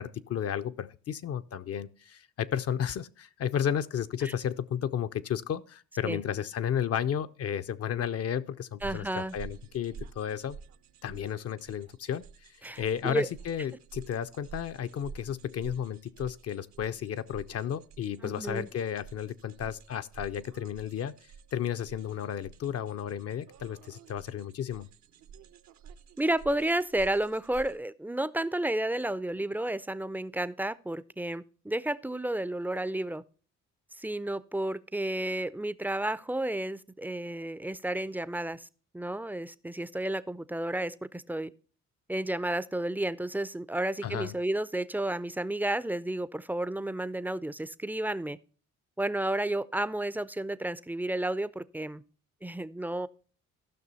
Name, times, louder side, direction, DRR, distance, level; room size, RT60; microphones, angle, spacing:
voice 1, 0.0-10.6 11.0-12.2 12.8-21.1 21.5-24.9 44.0-44.3, left 9 dB, 55° left, 0.6 m, -33 dB
voice 2, 8.8-9.3 12.6-13.3 18.2-18.7 26.2-33.2 34.0-38.7 38.9-41.5 42.1-48.4 49.0-52.0 52.4-53.1, right 1 dB, 5° right, 0.4 m, -32 dB
sound 1, 8.8-27.8, right 6 dB, 65° right, 0.7 m, -50 dB
14.0 x 6.1 x 4.0 m
cardioid pair, 90°, 30 cm